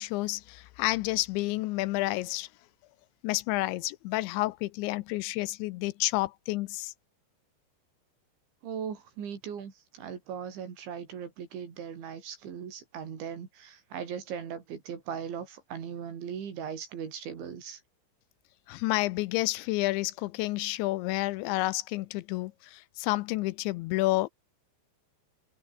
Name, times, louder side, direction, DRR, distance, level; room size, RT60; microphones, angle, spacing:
voice 1, 0.0-2.5 3.2-6.9 18.7-24.3, left 19 dB, 85° left, 2.9 m, -30 dB
voice 2, 8.6-17.8, right 7 dB, 70° right, 6.1 m, -39 dB
omnidirectional pair, 5.5 m